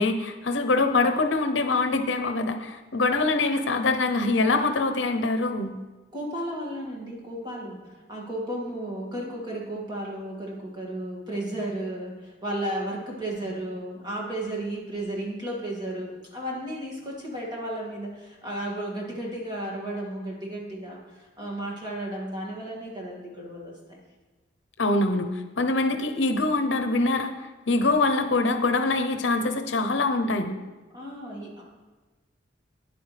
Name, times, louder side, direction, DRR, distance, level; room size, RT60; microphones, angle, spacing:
voice 1, 0.0-5.8 24.8-25.3 25.6-27.3 27.7-30.6, left 3 dB, 75° left, 6 dB, 0.7 m, -24 dB
voice 2, 6.1-24.0 30.9-31.6, right 1 dB, 25° right, -3 dB, 2.2 m, -34 dB
10.0 x 9.4 x 3.4 m, 1.2 s
head